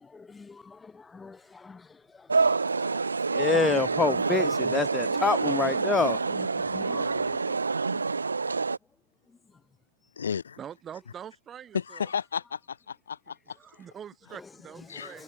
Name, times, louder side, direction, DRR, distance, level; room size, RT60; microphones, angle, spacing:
voice 1, 0.1-7.6 7.9-8.0 14.3-14.5 14.8-15.2, left 4 dB, 10° left, 2.7 m, -30 dB
sound 1, 2.3-8.8, right 4 dB, 80° right, 0.5 m, -27 dB
voice 2, 6.6-7.5 10.2-10.6 11.7-13.6 14.9-15.1, left 7 dB, 70° left, 2.0 m, -34 dB
voice 3, 10.6-12.1 13.6-15.2, right 9 dB, 20° right, 5.4 m, -44 dB
figure-of-eight pair, 105°, 0 cm